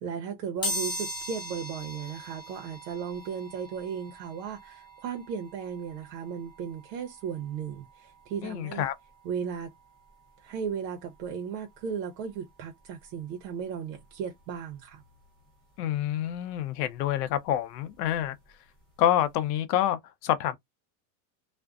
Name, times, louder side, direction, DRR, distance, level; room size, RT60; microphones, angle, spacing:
voice 1, 0.0-8.9 9.2-9.7 10.4-15.0, right 7 dB, 85° right, 0.7 m, -36 dB
sound 1, 0.6-11.3 11.8-11.9 13.0-13.1 13.4-15.5 15.8-18.5 18.8-19.0 19.3-19.4, left 1 dB, 10° left, 0.6 m, -41 dB
voice 2, 8.4-8.9 15.8-18.4 19.0-20.6, left 11 dB, 75° left, 0.6 m, -27 dB
2.5 x 2.1 x 2.3 m
supercardioid pair, 165°, 49 cm